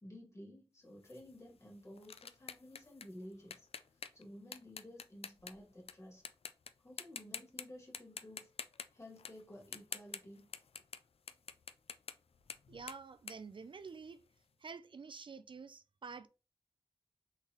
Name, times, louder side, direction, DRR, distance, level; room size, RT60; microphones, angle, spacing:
voice 1, 0.0-3.7 4.1-6.2 6.8-8.5 8.9-10.5, left 1 dB, 30° left, 2.1 m, -53 dB
sound 1, 1.0-5.9 6.3-6.7 7.0-7.6 7.9-14.3, left 6 dB, 90° left, 0.4 m, -48 dB
voice 2, 12.7-14.2 14.6-16.3, right 5 dB, 60° right, 0.3 m, -49 dB
4.2 x 3.8 x 2.9 m
wide cardioid pair, 85°, 10 cm